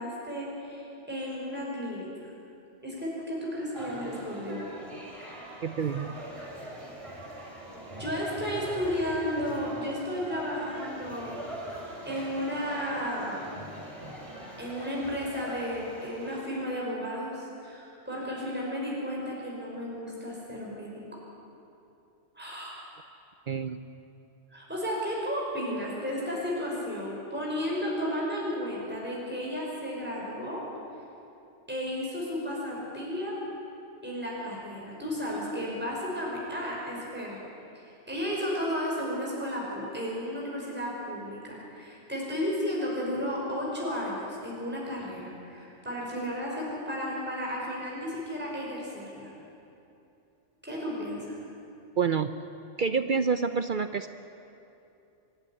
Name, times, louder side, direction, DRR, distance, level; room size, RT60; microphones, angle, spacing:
voice 1, 0.0-2.3 2.8-4.6 7.9-11.4 12.0-13.4 14.6-21.0 22.4-22.8 24.5-30.6 31.7-33.4 34.0-37.4 37.7-49.3 50.6-51.4, equal, 10° right, -5 dB, 5.4 m, -33 dB
sound 1, 3.7-16.4, right 1 dB, 25° right, 3.5 m, -42 dB
voice 2, 5.6-6.2 23.5-23.8 52.0-52.3 52.8-54.1, right 5 dB, 50° right, 9 dB, 0.7 m, -28 dB
24.5 x 15.0 x 9.9 m, 2.7 s
omnidirectional pair, 1.2 m